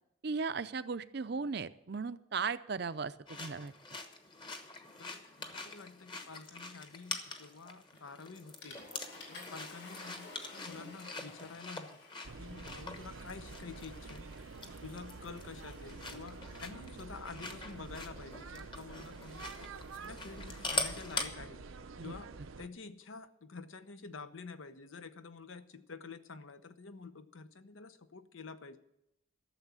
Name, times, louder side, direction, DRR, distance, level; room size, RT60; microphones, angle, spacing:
voice 1, 0.2-3.7 22.0-22.1, right 5 dB, 55° right, 14 dB, 0.5 m, -37 dB
sound 1, 3.3-21.3, left 3 dB, 25° left, 1.1 m, -44 dB
voice 2, 5.0-8.8 9.3-12.0 12.4-14.3 14.8-19.5 20.0-21.6 22.0-22.3 22.6-28.8, left 4 dB, 80° left, 11 dB, 0.9 m, -49 dB
Water / Toilet flush, 7.9-8.2 8.6-16.5, left 3 dB, 60° left, 3.5 m, -54 dB
sound 2, 12.2-22.7, right 4 dB, 90° right, 0.7 m, -48 dB
13.0 x 7.0 x 9.7 m, 0.83 s
head